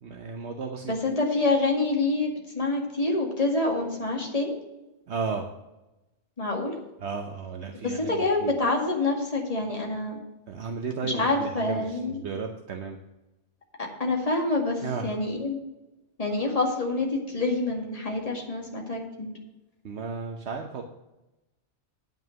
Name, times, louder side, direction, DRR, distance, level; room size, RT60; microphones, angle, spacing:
voice 1, 0.0-0.9 5.1-5.5 7.0-8.5 10.5-13.0 14.8-15.2 19.8-20.8, right 5 dB, 70° right, 4 dB, 1.1 m, -34 dB
voice 2, 0.8-4.5 6.4-6.8 7.7-10.2 11.0-12.2 13.8-15.6 16.2-19.3, left 2 dB, 30° left, 0 dB, 2.1 m, -27 dB
9.2 x 5.8 x 7.8 m, 1.0 s
omnidirectional pair, 1.2 m